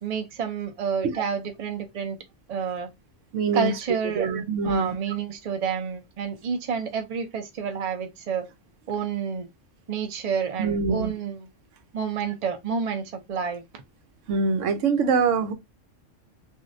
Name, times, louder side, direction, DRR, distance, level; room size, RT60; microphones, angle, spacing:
voice 1, 0.0-2.2 2.5-2.9 3.5-4.3 4.6-8.5 8.9-9.5 9.9-11.5 11.9-13.6, right 6 dB, 40° right, 0.6 m, -29 dB
voice 2, 3.3-3.7 4.1-5.0 10.6-11.1 14.3-15.5, right 5 dB, 80° right, 1.0 m, -24 dB
3.1 x 2.7 x 2.6 m
omnidirectional pair, 1.3 m